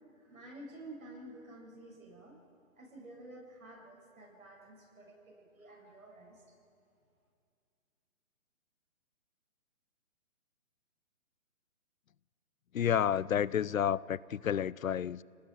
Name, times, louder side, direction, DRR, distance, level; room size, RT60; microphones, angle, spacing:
voice 1, 0.2-2.4 2.7-6.4, right 1 dB, 85° right, -1 dB, 7.9 m, -51 dB
voice 2, 12.7-15.2, left 9 dB, 75° left, 21 dB, 0.7 m, -30 dB
29.5 x 19.0 x 9.2 m, 2.4 s
hypercardioid pair, 175°, 41 cm